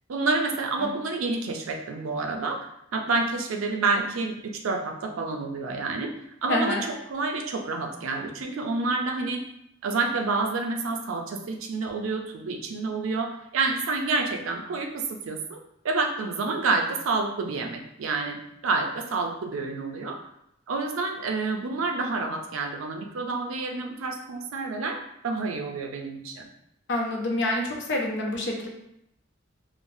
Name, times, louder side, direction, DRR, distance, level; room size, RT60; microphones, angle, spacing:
voice 1, 0.1-2.6 2.9-6.1 6.4-9.4 9.8-15.6 15.8-18.4 18.6-20.2 20.7-25.0 25.2-26.5, right 3 dB, 85° right, 3 dB, 0.4 m, -28 dB
voice 2, 6.5-6.8 26.9-28.7, left 1 dB, 60° left, 0 dB, 0.6 m, -27 dB
3.1 x 2.0 x 2.6 m, 0.78 s
head